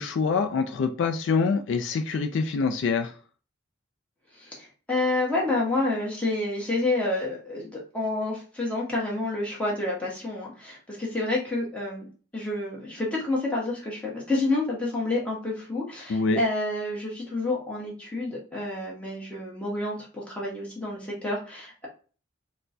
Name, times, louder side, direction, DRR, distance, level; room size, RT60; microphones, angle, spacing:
voice 1, 0.0-3.1 16.1-16.4, left 4 dB, 65° left, 7 dB, 0.3 m, -25 dB
voice 2, 4.4-12.1 12.3-21.9, left 2 dB, 5° left, -5 dB, 1.1 m, -29 dB
4.2 x 2.1 x 2.6 m, 0.38 s
head